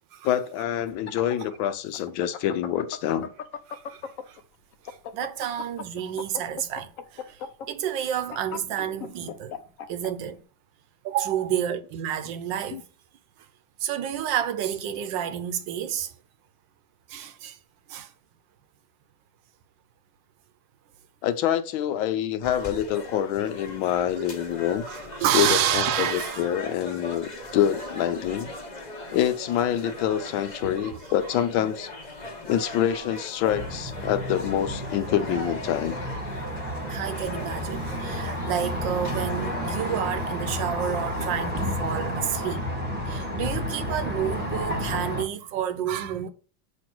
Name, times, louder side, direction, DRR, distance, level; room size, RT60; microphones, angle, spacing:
voice 1, 0.2-3.3 12.7-12.8 21.2-24.8 25.3-28.5 29.1-31.9 32.4-36.0 40.9-41.0, left 10 dB, 85° left, 1.5 m, -26 dB
sound 1, 0.8-4.4 4.7-10.1, left 7 dB, 65° left, 0.8 m, -37 dB
voice 2, 3.7-4.4 4.9-9.6 9.9-10.4 11.0-12.8 13.8-16.1 17.1-17.6 17.9-18.1 24.9-26.5 30.8-31.4 36.9-42.7 43.1-46.3, right 9 dB, 75° right, 1.3 m, -30 dB
sound 2, 22.4-40.0, left 2 dB, 30° left, 0.8 m, -39 dB
sound 3, 33.5-45.2, equal, 5° right, 1.4 m, -31 dB
7.6 x 3.1 x 6.0 m
omnidirectional pair, 2.1 m